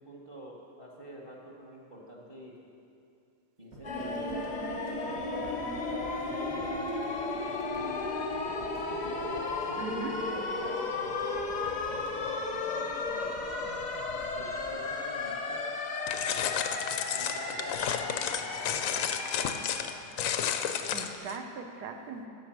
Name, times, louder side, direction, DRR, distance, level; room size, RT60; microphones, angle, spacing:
voice 1, 0.0-2.6 3.6-6.8 7.2-8.1 8.5-13.5 14.1-15.6 16.3-19.1 19.4-19.8, right 1 dB, 25° right, -2 dB, 0.9 m, -48 dB
sound 1, 3.7-16.2, equal, 55° right, 1.7 m, -51 dB
sound 2, 3.8-19.8, left 3 dB, 45° left, 0.6 m, -34 dB
voice 2, 9.8-10.2 20.9-22.3, right 4 dB, 70° right, 5 dB, 1.3 m, -39 dB
sound 3, 16.1-21.4, left 8 dB, 70° left, 0.8 m, -32 dB
10.5 x 6.9 x 6.1 m, 2.5 s
omnidirectional pair, 1.8 m